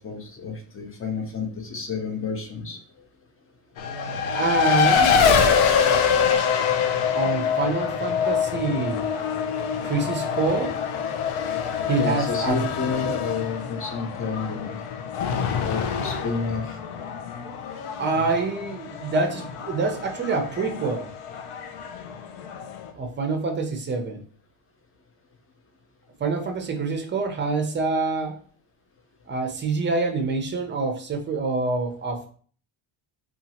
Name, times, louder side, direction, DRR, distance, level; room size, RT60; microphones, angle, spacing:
voice 1, 0.0-2.8 12.0-14.8 15.6-16.8, left 4 dB, 25° left, 3 dB, 0.6 m, -30 dB
Race car auto racing, 3.8-22.9, left 7 dB, 80° left, 0.6 m, -25 dB
voice 2, 4.3-5.2 7.1-9.0 9.8-10.8 11.9-12.6 18.0-21.1 22.9-24.2 26.2-28.4 29.3-32.3, right 3 dB, 25° right, 4 dB, 0.5 m, -26 dB
2.7 x 2.4 x 2.7 m, 0.43 s
cardioid pair, 120°, 50 cm